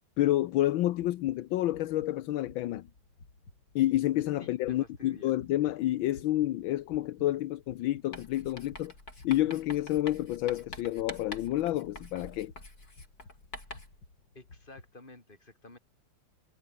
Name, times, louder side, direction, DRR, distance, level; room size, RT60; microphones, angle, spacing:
voice 1, 0.2-2.9 3.7-8.9 9.2-12.5, left 14 dB, 80° left, 1.5 m, -29 dB
sound 1, 0.9-14.9, left 3 dB, 65° left, 5.2 m, -56 dB
voice 2, 4.4-5.3 14.3-15.8, left 2 dB, 25° left, 4.0 m, -51 dB
Writing, 8.1-14.0, left 2 dB, 45° left, 7.0 m, -46 dB
omnidirectional pair, 2.2 m